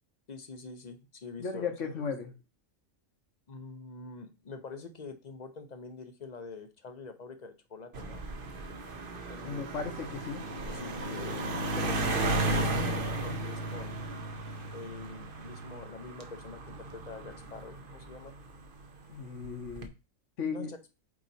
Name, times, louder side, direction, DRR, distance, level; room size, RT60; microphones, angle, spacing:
voice 1, 0.3-1.7 3.5-8.2 9.3-9.7 10.7-14.1 14.7-18.3 20.5-20.8, left 4 dB, 40° left, 8 dB, 0.8 m, -45 dB
voice 2, 1.4-2.3 9.4-10.4 19.1-19.9 20.4-20.7, left 5 dB, 65° left, 5 dB, 1.3 m, -35 dB
sound 1, 7.9-18.7 19.4-19.9, right 2 dB, 45° right, 0.9 m, -34 dB
8.3 x 3.0 x 4.0 m, 0.29 s
omnidirectional pair, 1.4 m